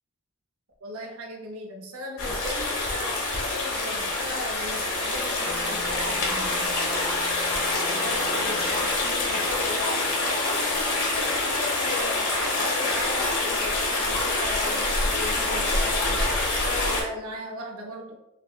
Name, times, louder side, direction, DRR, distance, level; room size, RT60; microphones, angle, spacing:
voice 1, 0.8-6.8 7.9-10.0 10.5-16.3 16.6-18.2, left 1 dB, 75° right, 2 dB, 0.6 m, -37 dB
sound 1, 2.2-17.0, left 2 dB, 80° left, 1.2 m, -26 dB
Wind instrument woodwind instrument, 5.4-12.4, right 2 dB, 35° left, 0.8 m, -44 dB
5.9 x 2.1 x 2.3 m, 0.93 s
head